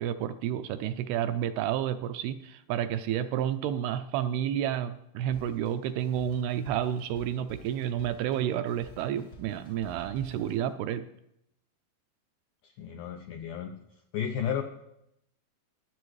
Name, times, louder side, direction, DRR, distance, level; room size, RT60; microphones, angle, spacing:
voice 1, 0.0-11.1, right 10 dB, 85° right, 10 dB, 2.4 m, -30 dB
Drum kit, 5.3-10.7, equal, 55° left, 1.1 m, -51 dB
voice 2, 12.8-13.7 14.1-14.6, left 8 dB, 85° left, 4 dB, 1.9 m, -32 dB
22.0 x 7.7 x 3.2 m, 0.80 s
omnidirectional pair, 4.6 m